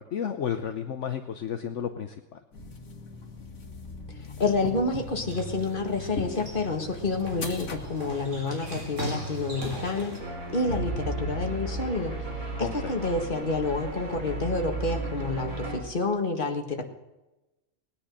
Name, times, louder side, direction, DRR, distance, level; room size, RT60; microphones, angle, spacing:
voice 1, 0.0-2.2 12.6-12.9, left 8 dB, 65° left, 6 dB, 1.2 m, -32 dB
sound 1, 2.5-8.6, left 2 dB, 85° left, 2.2 m, -40 dB
voice 2, 4.4-10.2 10.5-12.2 12.6-16.8, left 3 dB, 40° left, 3 dB, 2.0 m, -29 dB
sound 2, 4.6-10.2, right 1 dB, 65° right, 4.1 m, -39 dB
sound 3, 10.2-15.8, right 2 dB, 85° right, 3.9 m, -34 dB
19.0 x 10.0 x 6.6 m, 1.0 s
omnidirectional pair, 1.4 m